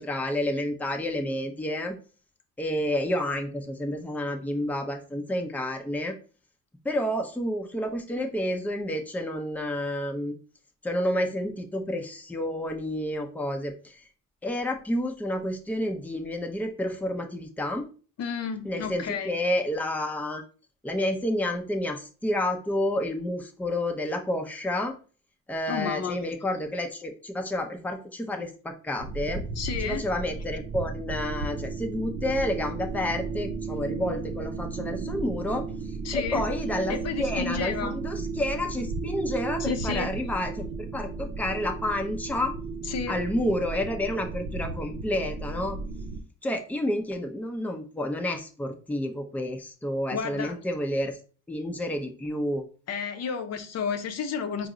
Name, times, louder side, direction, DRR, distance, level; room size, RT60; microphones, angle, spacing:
voice 1, 0.0-2.0 2.6-6.1 6.8-10.3 10.8-14.1 14.4-17.8 18.6-20.4 20.8-25.0 25.5-29.4 29.8-40.7 40.9-42.5 43.1-45.8 46.4-51.2 51.5-52.7, left 1 dB, 5° left, 0.6 m, -30 dB
voice 2, 18.2-19.3 25.7-26.2 29.6-30.0 36.0-36.4 36.9-38.0 39.6-40.1 42.9-43.2 50.1-50.6 52.9-54.7, left 6 dB, 55° left, 0.6 m, -31 dB
sound 1, 29.0-46.2, right 4 dB, 75° right, 0.6 m, -34 dB
4.3 x 2.0 x 3.7 m
cardioid pair, 90°, 30 cm